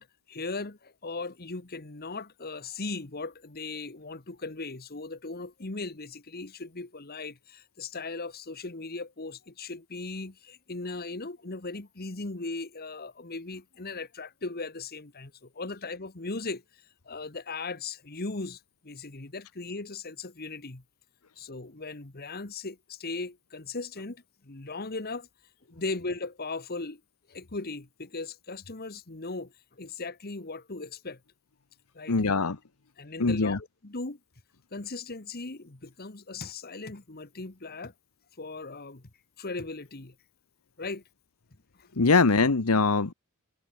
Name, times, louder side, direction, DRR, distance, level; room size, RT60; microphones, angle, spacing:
voice 1, 0.0-16.6 17.0-20.8 21.4-25.3 25.7-27.0 27.3-31.2 31.9-32.2 33.0-33.6 33.8-34.2 34.7-37.9 38.4-39.0 39.4-40.1 40.8-41.0 41.8-41.9, left 3 dB, 45° left, 1.5 m, -38 dB
voice 2, 32.1-32.6 33.2-33.6 42.0-43.1, left 4 dB, 80° left, 1.1 m, -22 dB
head